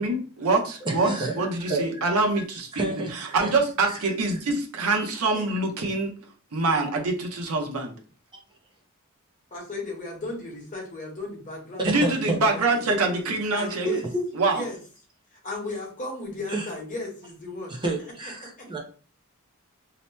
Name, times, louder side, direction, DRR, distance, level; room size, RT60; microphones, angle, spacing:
voice 1, 0.0-2.8 3.1-6.1 6.5-7.9 11.8-13.9 14.4-14.6, right 3 dB, 80° right, 2 dB, 0.7 m, -25 dB
voice 2, 0.8-2.0 2.7-3.1 3.4-3.5 3.8-4.0 8.3-8.4 11.8-12.4 13.8-14.3 16.5-16.7 17.7-18.8, right 2 dB, 20° right, 1 dB, 0.5 m, -29 dB
voice 3, 9.5-12.6 12.9-13.2 13.5-14.0 14.5-14.8 15.4-17.8, left 2 dB, 35° left, -1 dB, 1.0 m, -35 dB
2.8 x 2.1 x 3.2 m, 0.39 s
head